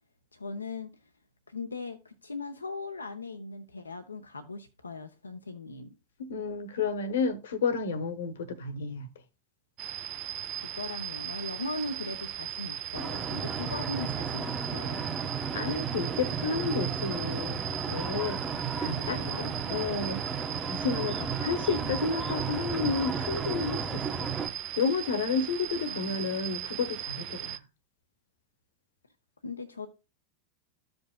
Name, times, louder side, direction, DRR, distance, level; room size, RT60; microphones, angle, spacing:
voice 1, 0.3-0.9 1.5-5.9 10.7-15.0 19.0-19.5 21.8-22.0 25.9-26.3 29.4-29.9, left 3 dB, 85° left, 0.6 m, -39 dB
voice 2, 6.2-9.1 15.5-18.4 18.8-19.2 19.7-20.2 20.7-24.3 24.8-27.6, left 5 dB, 70° left, 1.1 m, -31 dB
sound 1, 9.8-27.6, right 11 dB, 45° right, 0.6 m, -38 dB
sound 2, 12.9-24.5, right 5 dB, 20° right, 1.2 m, -34 dB
14.0 x 5.3 x 2.2 m
figure-of-eight pair, 90°, 0 cm